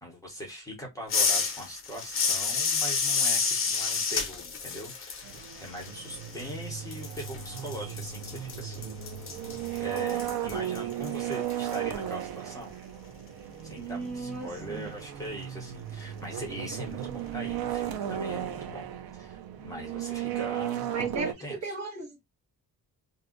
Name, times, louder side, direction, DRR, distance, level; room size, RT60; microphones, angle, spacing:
voice 1, 0.0-9.0 9.8-12.8 13.6-20.9 21.4-21.7, equal, 10° left, 0.9 m, -41 dB
sound 1, 1.1-6.6 6.9-11.8, left 5 dB, 35° left, 0.7 m, -30 dB
sound 2, 5.2-21.3, right 11 dB, 75° right, 0.6 m, -35 dB
voice 2, 13.8-14.9 20.9-22.2, right 3 dB, 50° right, 1.2 m, -36 dB
2.6 x 2.2 x 3.7 m
wide cardioid pair, 175°, 36 cm